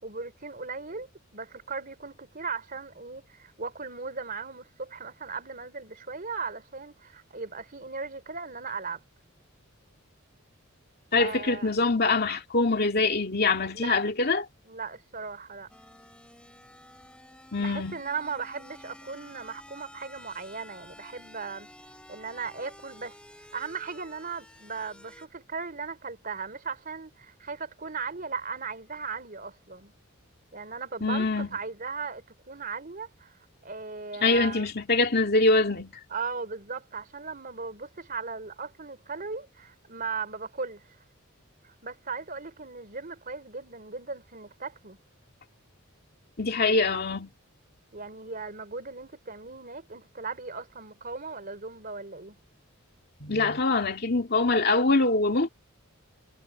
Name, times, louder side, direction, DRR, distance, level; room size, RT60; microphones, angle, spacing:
voice 1, 0.0-9.0 11.1-11.7 13.7-14.0 14.7-15.7 17.6-21.7 22.1-23.2 23.5-29.9 30.5-34.7 36.1-40.9 41.6-45.0 47.9-52.4, right 5 dB, 40° right, 3.7 m, -37 dB
voice 2, 11.1-14.4 17.5-18.0 31.0-31.5 34.2-36.0 46.4-47.3 53.2-55.5, left 3 dB, 50° left, 2.5 m, -24 dB
sound 1, 15.7-25.3, left 1 dB, 5° left, 4.4 m, -51 dB
head